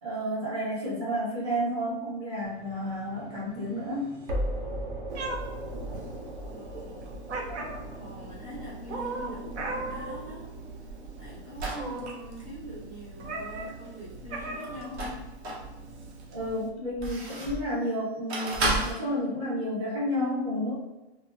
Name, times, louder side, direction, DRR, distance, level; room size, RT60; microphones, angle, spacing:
voice 1, 0.0-4.2 16.3-20.7, equal, 35° right, -8 dB, 1.4 m, -31 dB
sound 1, 2.4-13.5, equal, 50° right, 0.7 m, -39 dB
Meow, 5.1-16.7, right 2 dB, 85° right, 0.7 m, -39 dB
voice 2, 6.4-7.3 7.9-10.5 11.2-15.3, left 1 dB, 10° right, -21 dB, 0.3 m, -43 dB
sound 2, 10.2-11.9 14.6-15.7 16.2-17.7 18.3-18.9, right 2 dB, 70° right, 1.0 m, -32 dB
3.2 x 2.0 x 2.5 m, 1.0 s
hypercardioid pair, 170°, 34 cm